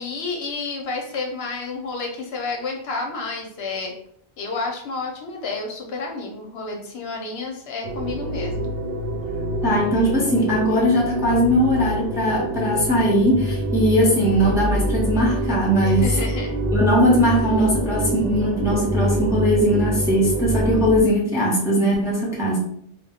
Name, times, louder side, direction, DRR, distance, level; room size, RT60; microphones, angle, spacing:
voice 1, 0.0-3.9 4.4-8.7 15.8-16.5, left 3 dB, 65° left, 1 dB, 0.8 m, -30 dB
sound 1, 7.8-21.0, right 1 dB, 85° right, 0.9 m, -25 dB
voice 2, 9.6-16.1 16.7-22.6, equal, 5° right, -4 dB, 0.6 m, -20 dB
2.3 x 2.1 x 3.5 m, 0.67 s
omnidirectional pair, 1.2 m